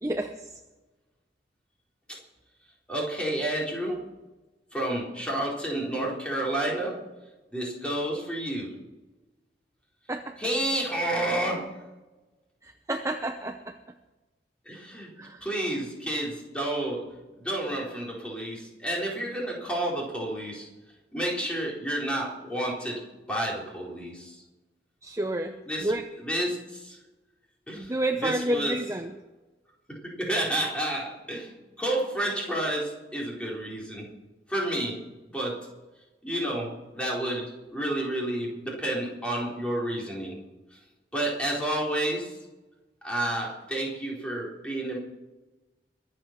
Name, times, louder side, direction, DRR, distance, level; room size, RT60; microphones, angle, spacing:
voice 1, 0.0-0.6 10.1-10.4 12.6-13.8 15.2-15.7 25.0-25.5 25.8-26.1 27.7-29.1, right 1 dB, 15° right, 6 dB, 0.7 m, -30 dB
voice 2, 2.9-4.0 4.7-7.0 7.5-8.8 10.4-11.8 14.7-15.1 15.4-20.7 21.1-23.0 23.3-24.4 25.7-25.9 26.2-27.0 27.7-27.9 28.2-28.8 29.9-34.1 34.5-35.0 35.3-35.7 36.2-40.4 40.7-40.8 41.1-42.4 43.0-45.0, right 1 dB, 5° left, -3 dB, 4.1 m, -30 dB
22.5 x 8.0 x 6.0 m, 1.1 s
head